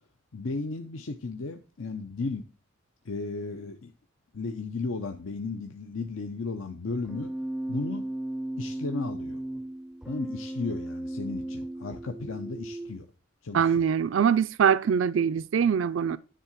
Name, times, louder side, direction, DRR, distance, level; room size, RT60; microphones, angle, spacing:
voice 1, 0.3-2.5 3.0-3.9 4.3-7.3 7.7-8.1 8.6-9.4 10.1-13.0 13.4-13.9, left 3 dB, 80° left, 0.8 m, -34 dB
Keyboard (musical), 7.1-13.0, right 1 dB, 5° right, 0.5 m, -35 dB
voice 2, 13.5-16.2, right 7 dB, 70° right, 0.4 m, -23 dB
10.0 x 3.8 x 7.3 m
head